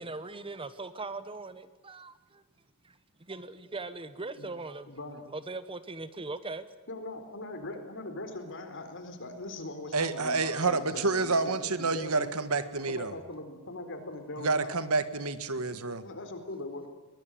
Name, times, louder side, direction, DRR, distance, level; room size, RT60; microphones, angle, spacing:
voice 1, 0.0-2.4 2.8-4.9 5.3-6.7 9.9-10.0 10.5-10.7 12.5-12.7, right 3 dB, 25° right, 13 dB, 1.0 m, -40 dB
voice 2, 4.9-5.2 6.9-12.3 12.9-14.7 16.0-16.8, left 2 dB, 60° left, 7 dB, 4.1 m, -41 dB
voice 3, 9.9-13.1 14.4-16.1, right 3 dB, 75° right, 12 dB, 1.7 m, -29 dB
23.0 x 20.0 x 9.2 m, 1.2 s
head